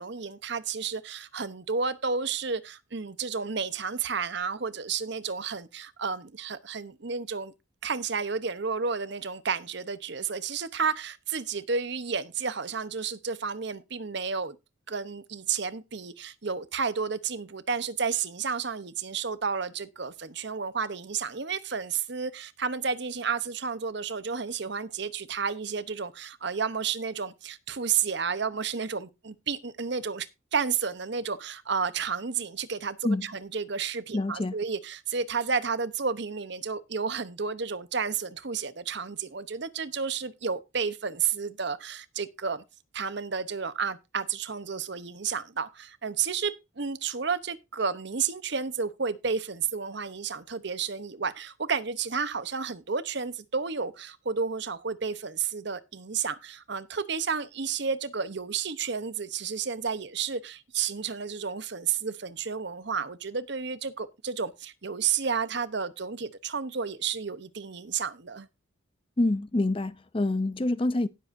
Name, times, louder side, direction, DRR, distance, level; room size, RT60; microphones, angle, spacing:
voice 1, 0.0-7.5 7.8-14.6 14.9-42.6 42.9-68.5, right 6 dB, 55° right, 0.9 m, -31 dB
voice 2, 34.1-34.6 69.2-71.1, left 2 dB, 25° left, 0.5 m, -26 dB
18.0 x 7.7 x 2.6 m
head